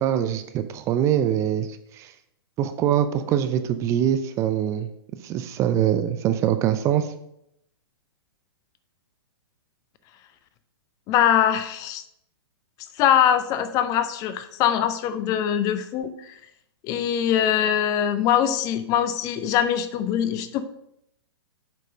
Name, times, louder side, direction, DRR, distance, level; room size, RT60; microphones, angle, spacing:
voice 1, 0.0-2.1 2.6-4.9 5.2-7.1, right 10 dB, 20° right, 10 dB, 0.5 m, -23 dB
voice 2, 11.1-12.0 13.0-16.3 16.8-20.6, left 10 dB, 25° left, 12 dB, 0.6 m, -22 dB
7.5 x 5.3 x 5.1 m, 0.76 s
figure-of-eight pair, 115°, 13 cm